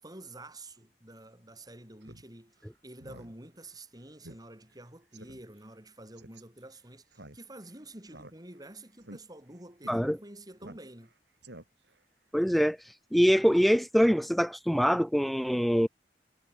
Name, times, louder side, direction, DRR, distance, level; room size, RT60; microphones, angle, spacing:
voice 1, 0.0-11.1, right 1 dB, 20° right, 7.8 m, -49 dB
Speech synthesizer, 2.0-2.2 2.6-2.7 3.0-3.3 3.7-3.8 4.2-4.4 4.7-4.8 5.1-5.4 6.2-6.4 7.1-7.7 8.1-8.7 9.0-9.2 9.8-10.0 10.6-11.1 11.4-12.0, right 1 dB, 80° right, 7.6 m, -49 dB
voice 2, 12.3-12.8 13.1-15.9, equal, ahead, 1.3 m, -24 dB
head